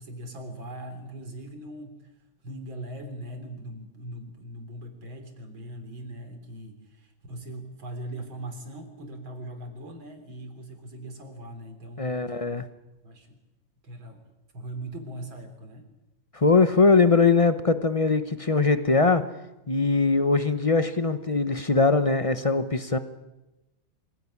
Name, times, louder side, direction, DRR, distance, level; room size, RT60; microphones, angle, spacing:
voice 1, 0.0-2.1 2.4-12.4 13.0-13.4 13.8-14.2 14.5-15.9, right 1 dB, 80° right, 6 dB, 4.3 m, -40 dB
voice 2, 12.0-12.7 16.3-19.2 19.7-23.0, left 4 dB, 35° left, 11 dB, 0.5 m, -21 dB
25.0 x 16.0 x 9.8 m, 0.98 s
omnidirectional pair, 2.1 m